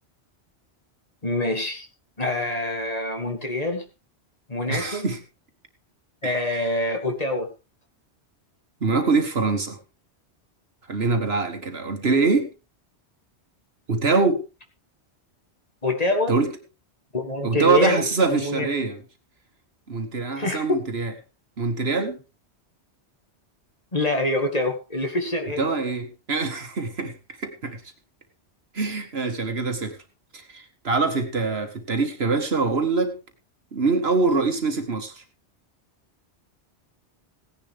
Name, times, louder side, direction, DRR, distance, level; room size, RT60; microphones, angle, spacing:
voice 1, 1.2-1.9 2.2-3.8 4.5-5.1 6.2-7.5 15.8-16.3 17.1-18.7 20.4-20.8 23.9-25.7, left 2 dB, 35° left, 4 dB, 2.3 m, -25 dB
voice 2, 4.7-5.2 6.2-6.7 8.8-9.8 10.9-12.5 13.9-14.4 16.3-16.5 17.4-19.0 19.9-21.1 21.6-22.2 25.6-27.2 27.4-27.8 28.7-30.0 30.3-33.2 33.7-35.2, right 4 dB, 65° right, 7 dB, 1.9 m, -24 dB
17.0 x 10.5 x 3.6 m, 0.30 s
omnidirectional pair, 1.1 m